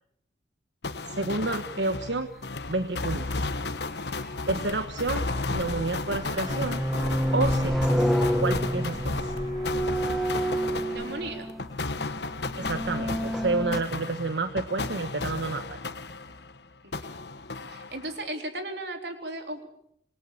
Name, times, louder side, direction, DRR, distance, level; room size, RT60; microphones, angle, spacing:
sound 1, 0.8-16.6 16.9-18.3, left 3 dB, 70° left, 1.3 m, -34 dB
voice 1, 1.1-2.3 2.7-3.3 4.5-5.2 5.5-6.8 7.3-8.1 8.4-9.3 12.6-15.8, right 3 dB, 85° right, 8 dB, 1.3 m, -29 dB
sound 2, 3.3-3.4 5.1-5.8 6.2-11.7 12.5-13.8, equal, ahead, 1.5 m, -28 dB
sound 3, 3.3-12.2, right 2 dB, 30° right, 5.5 m, -50 dB
voice 2, 10.9-11.5 16.8-17.2 17.7-19.7, right 1 dB, 65° right, 5 dB, 3.9 m, -36 dB
26.5 x 21.5 x 7.3 m, 0.72 s
head